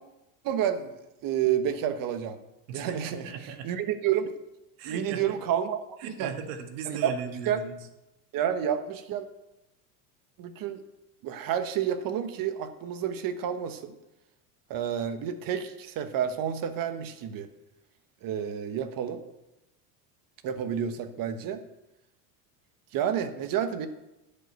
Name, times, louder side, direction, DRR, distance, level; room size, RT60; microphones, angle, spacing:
voice 1, 0.4-0.9 1.2-2.4 2.7-3.3 3.6-4.3 4.8-6.3 6.9-7.1 7.5-7.6 8.3-9.3 10.4-10.8 11.2-13.9 14.7-17.5 18.2-19.2 20.4-21.6 22.9-23.9, right 9 dB, 45° right, 9 dB, 1.3 m, -29 dB
voice 2, 2.7-3.7 4.8-5.2 6.0-7.8, right 7 dB, 65° right, 6 dB, 1.8 m, -37 dB
10.5 x 5.6 x 8.0 m, 0.95 s
supercardioid pair, 120°, 46 cm